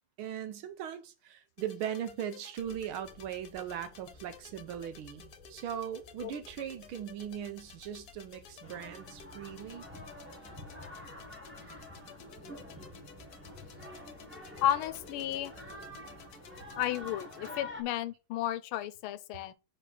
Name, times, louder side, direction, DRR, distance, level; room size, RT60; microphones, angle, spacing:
voice 1, 0.2-9.9, right 9 dB, 80° right, 1.7 m, -39 dB
sound 1, 1.6-17.6, left 6 dB, 55° left, 1.2 m, -54 dB
sound 2, 2.6-16.7, left 2 dB, 30° left, 0.9 m, -57 dB
sound 3, 8.6-17.8, left 1 dB, 5° right, 1.2 m, -48 dB
voice 2, 14.6-15.5 16.8-19.5, left 11 dB, 85° left, 1.4 m, -33 dB
5.0 x 4.6 x 5.8 m
omnidirectional pair, 2.3 m